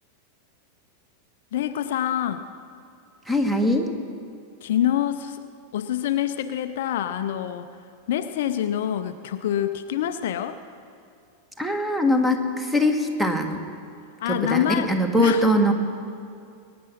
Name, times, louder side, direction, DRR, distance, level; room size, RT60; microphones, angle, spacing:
voice 1, 1.5-2.4 4.6-5.4 5.7-7.7 8.1-10.6 14.2-14.9 15.1-15.5, left 11 dB, 55° left, 9 dB, 0.5 m, -26 dB
voice 2, 3.2-3.9 11.6-13.6 14.3-15.7, left 1 dB, 5° right, 5 dB, 1.4 m, -22 dB
22.0 x 9.4 x 5.6 m, 2.4 s
figure-of-eight pair, 90°, 0 cm